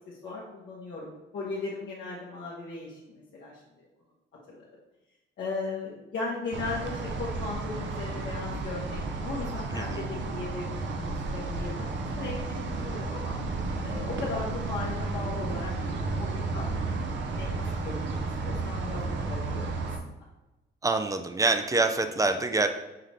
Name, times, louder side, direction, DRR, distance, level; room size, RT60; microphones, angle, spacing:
voice 1, 0.1-3.6 4.5-4.6 5.4-13.4 13.8-18.2 18.4-19.9, left 3 dB, 65° left, -6 dB, 1.0 m, -37 dB
sound 1, 6.5-20.0, right 3 dB, 65° right, 0.6 m, -32 dB
voice 2, 9.7-10.0 20.8-22.7, right 3 dB, 15° right, 8 dB, 0.4 m, -26 dB
5.7 x 2.6 x 3.3 m, 1.0 s
cardioid pair, 90°, 20 cm